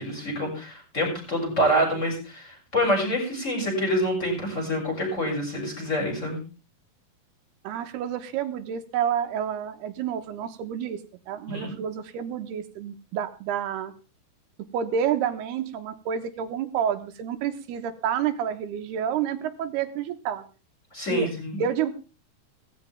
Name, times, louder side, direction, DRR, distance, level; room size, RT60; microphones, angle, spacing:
voice 1, 0.0-6.4 11.5-11.7 20.9-21.6, equal, 15° left, 2 dB, 7.3 m, -26 dB
voice 2, 7.6-11.0 11.3-13.9 14.7-20.4 21.1-21.3 21.6-21.9, right 8 dB, 85° right, 8 dB, 3.3 m, -29 dB
17.5 x 15.5 x 3.6 m, 0.33 s
omnidirectional pair, 4.6 m